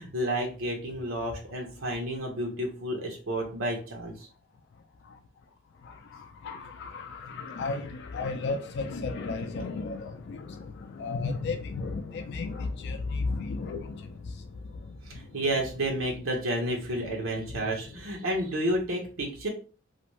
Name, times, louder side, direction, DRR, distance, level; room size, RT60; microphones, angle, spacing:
voice 1, 0.0-4.3 15.1-19.5, right 1 dB, 90° right, 0.8 m, -31 dB
voice 2, 5.8-15.4, left 3 dB, 60° left, 0.4 m, -34 dB
2.6 x 2.5 x 3.0 m
head